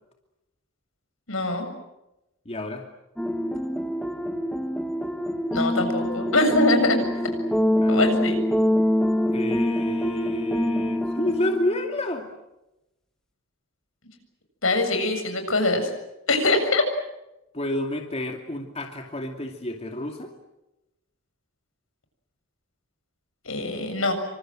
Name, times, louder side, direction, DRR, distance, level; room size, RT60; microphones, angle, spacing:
voice 1, 1.3-1.7 5.5-7.3 7.9-8.3 14.6-15.9 16.3-16.8 23.4-24.1, left 2 dB, 75° left, 6 dB, 7.4 m, -23 dB
voice 2, 2.4-2.8 7.8-8.0 9.3-12.3 17.5-20.3, left 1 dB, 30° left, 3 dB, 2.5 m, -29 dB
sound 1, 3.2-11.9, equal, 5° left, 1.4 m, -25 dB
28.0 x 25.5 x 7.8 m, 0.94 s
head